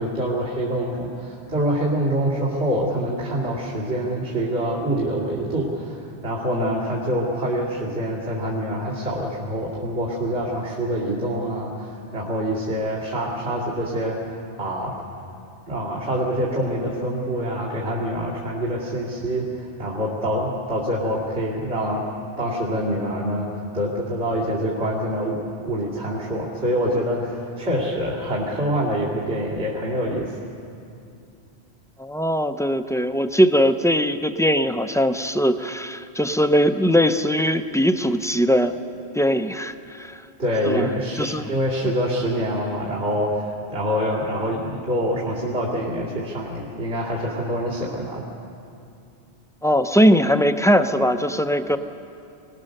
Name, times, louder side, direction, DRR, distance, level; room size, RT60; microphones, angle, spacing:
voice 1, 0.0-14.2 14.6-14.9 15.7-22.1 22.4-23.5 23.7-30.4 40.4-48.2, equal, 80° right, -7 dB, 3.1 m, -25 dB
voice 2, 32.0-38.7 39.1-40.2 40.6-40.9 41.2-41.5 49.6-51.8, equal, 5° left, 8 dB, 0.4 m, -20 dB
23.5 x 19.0 x 6.6 m, 2.6 s
omnidirectional pair, 1.1 m